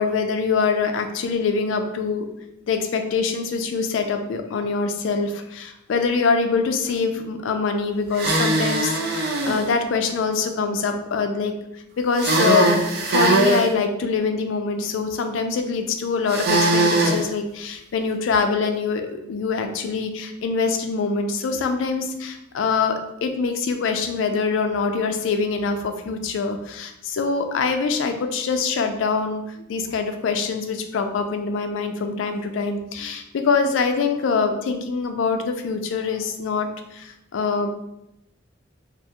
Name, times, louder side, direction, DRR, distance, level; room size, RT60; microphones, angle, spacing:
voice 1, 0.0-2.3 2.7-11.5 12.0-37.7, left 4 dB, 70° left, 6 dB, 0.3 m, -24 dB
sound 1, 8.1-9.6 12.2-13.7 16.3-17.2, right 2 dB, 50° right, 0.4 m, -20 dB
2.4 x 2.2 x 2.7 m, 0.85 s
head